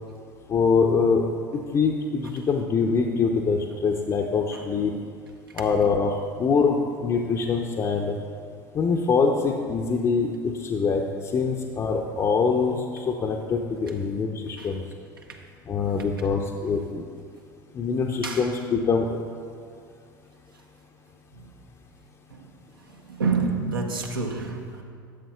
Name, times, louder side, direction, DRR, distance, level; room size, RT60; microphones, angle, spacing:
voice 1, 0.5-1.2 1.7-4.9 5.5-8.2 8.7-11.0 11.3-14.8 15.7-17.0 17.7-19.1, left 5 dB, 25° left, 0 dB, 0.6 m, -24 dB
voice 2, 18.2-18.6 21.3-21.5 22.3-22.5 22.8-24.8, right 4 dB, 75° right, 2 dB, 0.9 m, -29 dB
14.5 x 7.5 x 2.3 m, 2.3 s
figure-of-eight pair, 70°, 12 cm